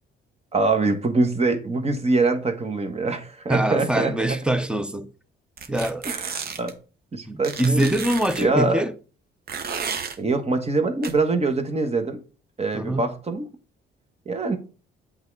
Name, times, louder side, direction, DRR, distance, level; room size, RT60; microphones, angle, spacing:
voice 1, 0.5-4.4 6.0-6.8 7.1-7.9 8.4-8.8 10.2-12.2 12.6-13.5 14.2-14.6, right 3 dB, 30° right, 1.4 m, -24 dB
voice 2, 3.5-5.1 5.7-6.1 7.3-8.9 12.7-13.0, right 1 dB, 5° right, 0.7 m, -24 dB
sound 1, 5.6-6.7 7.4-8.4 9.5-10.2 11.0-11.1, right 6 dB, 50° right, 1.0 m, -32 dB
8.0 x 3.8 x 4.7 m
cardioid pair, 90°, 20 cm